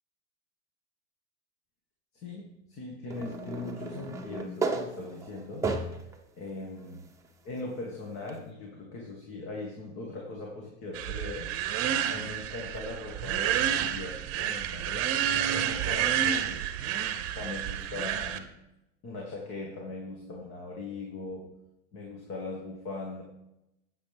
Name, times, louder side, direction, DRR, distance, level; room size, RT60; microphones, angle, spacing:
voice 1, 2.1-5.7 6.4-7.0 7.4-11.5 12.1-16.6 17.0-18.5 19.0-21.5 21.9-23.2, left 2 dB, 40° left, -1 dB, 1.9 m, -40 dB
sound 1, 3.1-6.2 6.8-6.9 8.3-8.4, right 3 dB, 10° right, 0.9 m, -34 dB
sound 2, 10.9-18.4, right 10 dB, 45° right, 0.9 m, -30 dB
9.1 x 8.3 x 3.5 m, 0.88 s
supercardioid pair, 130°, 34 cm